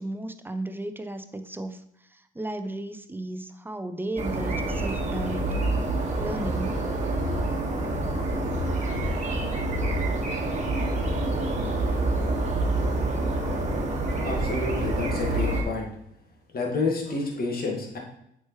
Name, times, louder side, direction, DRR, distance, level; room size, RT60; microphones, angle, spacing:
voice 1, 0.0-1.8 2.1-5.6 6.2-6.9, right 1 dB, 10° right, 9 dB, 0.6 m, -34 dB
sound 1, 4.2-15.6, right 2 dB, 35° right, 1.5 m, -27 dB
voice 2, 14.2-15.9 16.5-18.0, left 3 dB, 50° left, 0 dB, 1.8 m, -29 dB
7.9 x 4.8 x 3.1 m, 0.75 s
cardioid pair, 90°, 20 cm